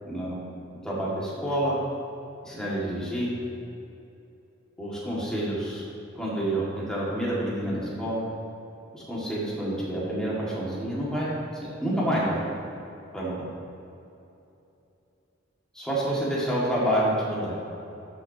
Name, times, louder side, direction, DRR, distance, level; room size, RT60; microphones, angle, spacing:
voice 1, 0.0-0.4 0.8-1.8 2.4-3.3 4.8-5.8 6.1-8.2 8.9-12.4 13.1-13.5 15.7-17.5, right 1 dB, 5° left, -8 dB, 1.9 m, -28 dB
13.0 x 6.2 x 2.8 m, 2.8 s
head